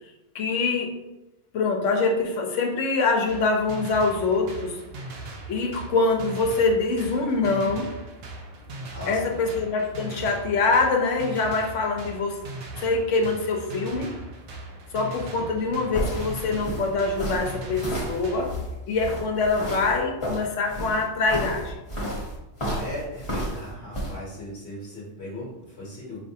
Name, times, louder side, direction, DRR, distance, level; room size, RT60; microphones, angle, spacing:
voice 1, 0.3-0.9 1.5-4.8 5.5-7.9 9.1-12.4 12.8-14.1 14.9-18.5 18.9-21.7, left 3 dB, 90° left, 2 dB, 1.1 m, -24 dB
sound 1, 3.3-18.5, right 2 dB, 65° right, 0.8 m, -39 dB
voice 2, 8.9-9.5 15.3-16.0 22.7-26.2, left 1 dB, 65° left, -5 dB, 1.2 m, -38 dB
sound 2, 15.5-24.1, equal, 30° left, 0.9 m, -32 dB
5.0 x 2.9 x 2.7 m, 0.96 s
omnidirectional pair, 1.2 m